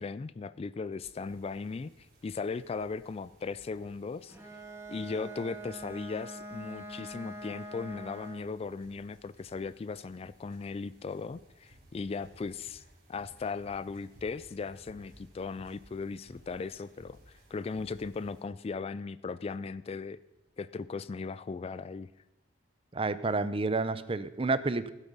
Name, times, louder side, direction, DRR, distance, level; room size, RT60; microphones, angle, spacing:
voice 1, 0.0-1.9 2.2-4.4 4.9-12.8 13.1-17.2 17.5-20.2 20.6-22.1, left 4 dB, 35° left, 17 dB, 0.3 m, -37 dB
sound 1, 1.0-18.4, equal, 55° right, 4.0 m, -60 dB
Bowed string instrument, 4.3-8.6, right 1 dB, 15° right, 1.8 m, -44 dB
voice 2, 22.9-24.9, right 3 dB, 30° right, 14 dB, 0.6 m, -30 dB
15.0 x 8.2 x 5.4 m, 1.0 s
head